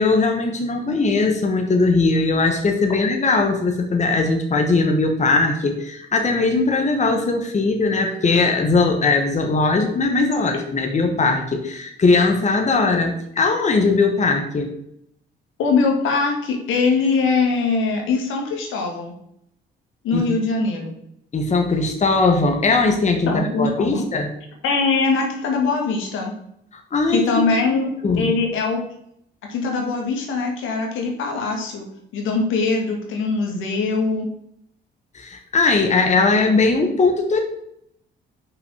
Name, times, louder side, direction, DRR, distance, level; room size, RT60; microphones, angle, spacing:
voice 1, 0.0-14.7 20.1-20.2 21.3-24.3 26.9-27.2 27.7-28.3 35.1-37.4, left 3 dB, 35° left, 3 dB, 1.6 m, -19 dB
voice 2, 15.6-19.1 20.0-20.9 23.3-24.0 24.6-26.3 27.1-27.9 28.2-28.8 29.5-31.8 32.1-34.3, left 4 dB, 85° left, 1 dB, 2.2 m, -22 dB
5.9 x 5.6 x 6.4 m, 0.72 s
cardioid pair, 90°, 20 cm